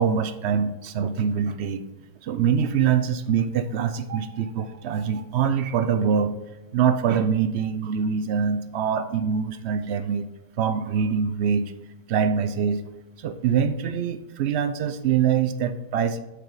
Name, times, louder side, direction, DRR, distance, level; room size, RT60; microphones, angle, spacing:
voice 1, 0.0-1.8 2.2-6.4 6.7-10.3 10.6-11.7 12.1-12.8 13.2-16.2, right 7 dB, 65° right, 11 dB, 0.7 m, -24 dB
7.7 x 4.8 x 3.9 m, 1.1 s
omnidirectional pair, 1.5 m